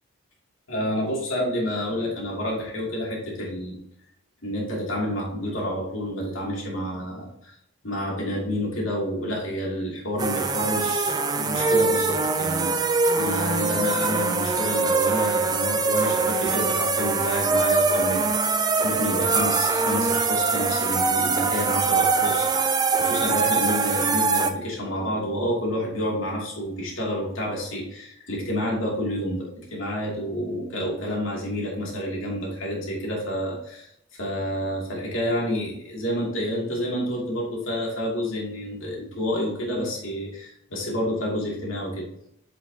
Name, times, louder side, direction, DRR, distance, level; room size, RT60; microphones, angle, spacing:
voice 1, 0.7-3.7 4.4-7.5 7.8-33.9 34.2-42.1, equal, 70° left, -3 dB, 2.5 m, -29 dB
sound 1, 10.2-24.5, right 4 dB, 20° right, 0.4 m, -23 dB
7.9 x 5.2 x 2.8 m, 0.75 s
head